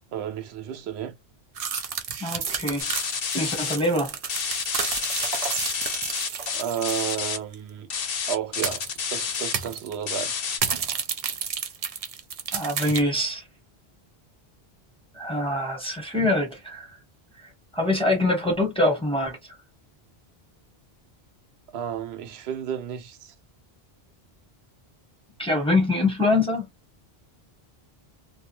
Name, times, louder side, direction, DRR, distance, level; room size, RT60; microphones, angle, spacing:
voice 1, 0.1-1.1 6.5-7.9 8.3-10.3 21.7-23.3, right 9 dB, 85° right, 0.8 m, -32 dB
sound 1, 1.6-7.2 7.5-7.6 8.6-9.0 9.3-9.9 10.5-13.0, right 6 dB, 50° right, 0.4 m, -31 dB
voice 2, 2.2-2.8 3.3-4.2 12.5-13.4 15.1-16.9 17.7-19.4 25.4-26.7, left 2 dB, 5° left, 0.9 m, -24 dB
sound 2, 2.8-3.8 4.3-7.4 7.9-9.5 10.1-10.6, left 6 dB, 65° left, 0.8 m, -29 dB
2.3 x 2.3 x 2.9 m
omnidirectional pair, 1.1 m